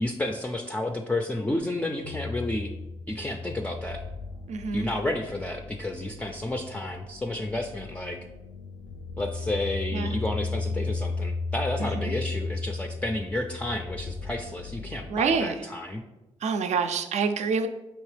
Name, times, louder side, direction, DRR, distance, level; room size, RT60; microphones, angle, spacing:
voice 1, 0.0-2.7 3.1-4.0 4.7-8.2 9.2-16.0, left 1 dB, 10° left, 3 dB, 0.3 m, -31 dB
sound 1, 2.0-15.4, left 3 dB, 80° left, 0.5 m, -35 dB
voice 2, 4.5-4.9 9.9-10.2 11.9-12.1 15.1-15.5 16.4-17.7, right 5 dB, 70° right, 8 dB, 0.4 m, -26 dB
4.5 x 3.0 x 3.2 m, 1.0 s
supercardioid pair, 60°, 12 cm